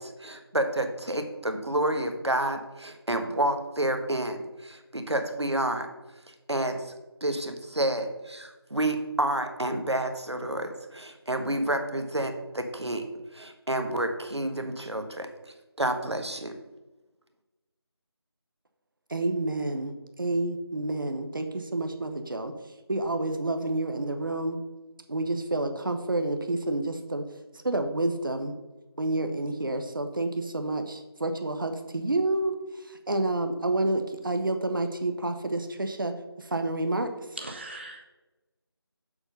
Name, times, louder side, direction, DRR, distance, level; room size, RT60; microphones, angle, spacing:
voice 1, 0.0-5.9 6.5-6.8 7.2-13.1 13.3-15.3 15.8-16.5, right 1 dB, 85° right, 7 dB, 1.3 m, -29 dB
voice 2, 19.1-22.5 22.9-24.6 25.1-27.2 27.6-28.5 29.0-37.1, right 2 dB, 50° right, 7 dB, 0.9 m, -29 dB
voice 3, 37.4-38.0, right 2 dB, 25° right, 2 dB, 0.6 m, -39 dB
7.0 x 5.5 x 5.4 m, 1.1 s
figure-of-eight pair, 165°, 14 cm